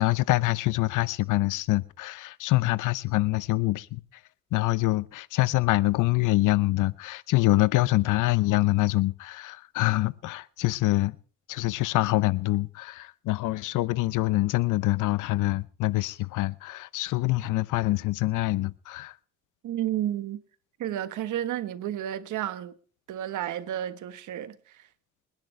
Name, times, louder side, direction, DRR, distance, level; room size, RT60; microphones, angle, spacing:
voice 1, 0.0-4.0 4.5-11.2 11.5-19.1, left 18 dB, 90° left, 0.8 m, -25 dB
voice 2, 19.6-20.4 20.8-22.7 23.1-24.8, right 11 dB, 80° right, 1.4 m, -31 dB
27.5 x 10.5 x 3.3 m
cardioid pair, 90°, 30 cm